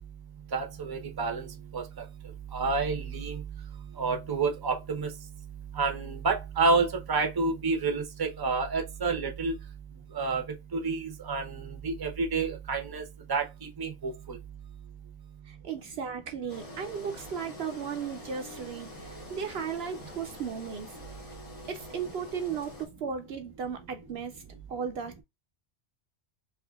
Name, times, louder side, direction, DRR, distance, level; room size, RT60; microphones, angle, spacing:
voice 1, 0.5-1.5 1.7-1.8 2.5-3.4 4.0-5.1 5.8-9.5 10.1-10.4 10.7-11.5 11.8-13.0 13.3-13.4 13.8-14.4, right 4 dB, 25° right, 0.7 m, -29 dB
voice 2, 15.5-20.9 21.7-24.4 24.7-25.2, right 7 dB, 65° right, 0.8 m, -36 dB
Engine, 16.5-22.9, left 2 dB, 30° left, 1.3 m, -46 dB
4.9 x 2.6 x 2.3 m
omnidirectional pair, 1.2 m